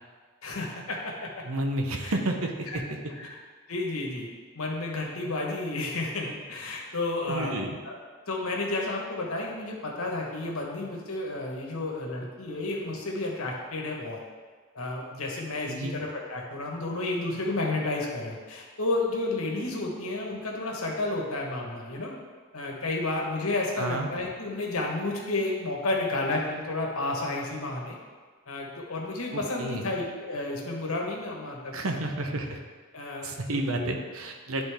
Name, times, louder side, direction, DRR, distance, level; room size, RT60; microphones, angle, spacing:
voice 1, 0.4-1.3 2.0-2.1 2.7-2.8 3.1-3.4 3.7-4.3 4.5-7.9 8.3-14.2 14.7-22.1 22.5-28.0 28.5-32.0 32.9-33.9, left 2 dB, 80° left, -1 dB, 1.3 m, -31 dB
voice 2, 1.4-2.8 7.3-7.8 15.6-15.9 23.8-24.1 29.3-29.8 31.7-32.6 33.2-34.6, right 1 dB, 75° right, 4 dB, 0.8 m, -31 dB
10.5 x 4.0 x 3.5 m, 1.5 s
head